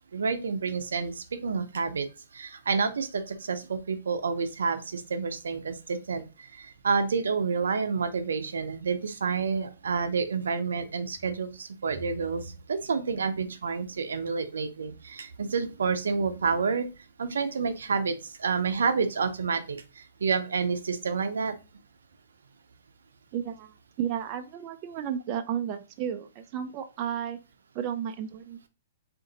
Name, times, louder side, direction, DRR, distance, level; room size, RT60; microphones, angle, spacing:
voice 1, 0.1-2.1 2.3-16.9 17.2-21.6, right 5 dB, 85° right, 9 dB, 0.6 m, -29 dB
voice 2, 23.3-27.4 27.7-28.7, right 9 dB, 35° right, 7 dB, 0.4 m, -33 dB
3.8 x 2.5 x 3.9 m, 0.29 s
hypercardioid pair, 135°, 0 cm